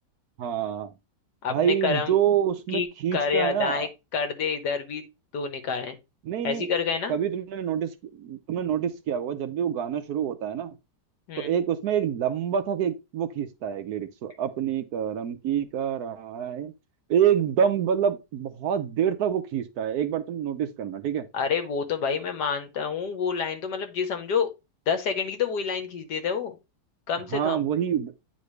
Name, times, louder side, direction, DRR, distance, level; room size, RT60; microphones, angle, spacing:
voice 1, 0.4-0.9 1.5-3.9 6.3-6.7 7.1-10.7 11.4-16.7 17.1-21.3 27.3-28.1, right 9 dB, 70° right, 1.1 m, -27 dB
voice 2, 1.4-2.1 2.7-3.9 4.1-5.0 5.3-6.0 6.4-7.1 11.3-11.5 21.3-24.5 24.9-26.6 27.1-27.6, left 6 dB, 75° left, 1.6 m, -28 dB
9.3 x 4.0 x 3.2 m
omnidirectional pair, 1.8 m